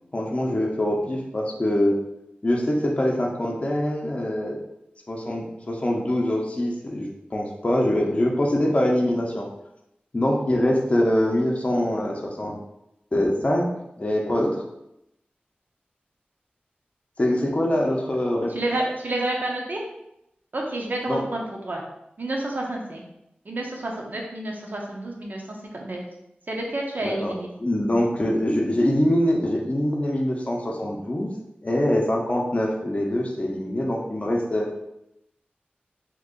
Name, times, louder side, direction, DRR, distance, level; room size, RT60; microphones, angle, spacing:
voice 1, 0.1-2.0 2.4-4.6 5.1-9.4 10.1-12.6 13.1-14.6 17.2-18.5 21.0-21.2 27.0-27.3 27.6-31.3 31.6-34.7, left 1 dB, 35° left, -2 dB, 0.6 m, -24 dB
voice 2, 18.5-19.8 20.5-21.8 22.2-23.0 23.5-25.4 25.7-26.0 26.5-27.5, right 1 dB, 60° right, 0 dB, 0.7 m, -29 dB
2.9 x 2.5 x 3.7 m, 0.83 s
wide cardioid pair, 65°, 4 cm